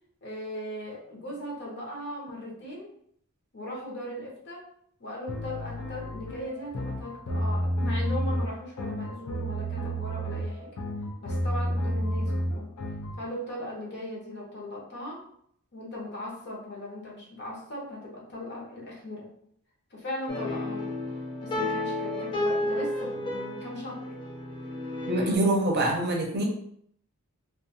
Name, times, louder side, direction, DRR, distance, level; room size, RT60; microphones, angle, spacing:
voice 1, 0.2-2.9 3.5-4.7 5.0-10.7 11.2-12.7 13.2-15.2 15.7-19.3 19.9-21.0 21.4-24.1, left 1 dB, 50° left, -3 dB, 0.8 m, -38 dB
sound 1, 5.3-13.2, equal, 90° left, 0.5 m, -30 dB
sound 2, 20.3-25.4, left 1 dB, 20° left, 0.4 m, -32 dB
voice 2, 25.1-26.4, right 1 dB, 45° right, 0 dB, 0.6 m, -25 dB
2.4 x 2.3 x 2.7 m, 0.67 s
head